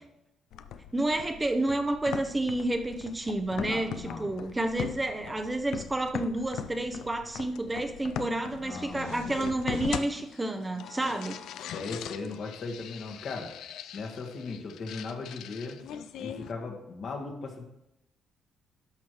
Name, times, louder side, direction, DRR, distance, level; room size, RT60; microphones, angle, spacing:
sound 1, 0.5-16.5, left 9 dB, 80° left, 0.4 m, -40 dB
voice 1, 0.9-11.4, right 2 dB, 15° right, 6 dB, 0.7 m, -30 dB
voice 2, 3.7-4.3 8.6-9.3 11.7-13.5 13.9-15.8 16.2-17.6, left 4 dB, 60° left, 2 dB, 1.6 m, -38 dB
11.5 x 6.2 x 3.1 m, 0.84 s
cardioid pair, 90°, 0 cm